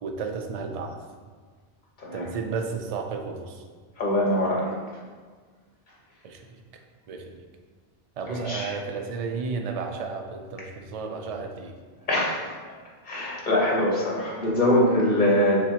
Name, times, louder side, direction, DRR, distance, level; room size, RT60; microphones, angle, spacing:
voice 1, 0.0-1.0 2.1-3.6 6.2-6.6 7.1-7.4 8.2-11.8, right 5 dB, 55° right, 3 dB, 0.4 m, -33 dB
voice 2, 4.0-4.7 8.3-8.7 12.1-12.5 13.0-15.6, left 1 dB, 50° left, -4 dB, 1.2 m, -23 dB
6.5 x 2.2 x 2.8 m, 1.5 s
omnidirectional pair, 1.1 m